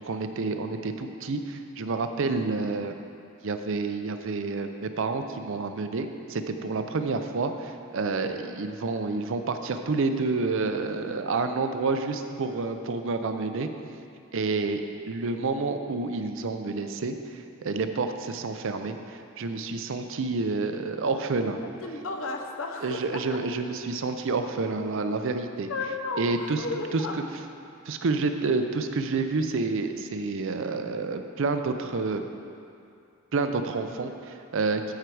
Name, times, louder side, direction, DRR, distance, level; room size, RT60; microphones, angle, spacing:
voice 1, 0.1-3.0 3.4-13.7 14.3-14.8 15.1-21.6 22.8-25.7 26.2-26.6 26.9-27.0 27.9-32.2 33.3-34.9, right 3 dB, 65° right, 7 dB, 0.5 m, -29 dB
voice 2, 21.8-23.2 25.7-27.1, left 3 dB, 65° left, 3 dB, 0.9 m, -33 dB
13.0 x 4.5 x 4.8 m, 2.6 s
head